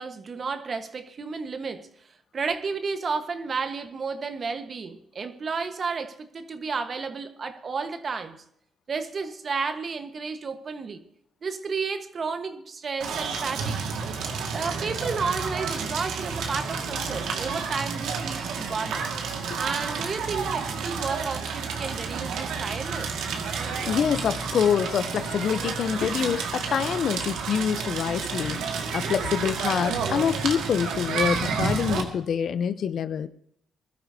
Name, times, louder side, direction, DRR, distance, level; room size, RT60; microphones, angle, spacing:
voice 1, 0.0-1.9 2.3-8.4 8.9-11.0 11.4-13.8 14.4-19.1 19.5-23.3, right 5 dB, 45° right, 1.3 m, -32 dB
Crackle, 13.0-32.0, right 5 dB, 85° right, 1.9 m, -30 dB
voice 2, 23.6-28.6 28.9-33.3, left 8 dB, 60° left, 0.6 m, -26 dB
21.0 x 13.0 x 2.8 m
cardioid pair, 90°, 0 cm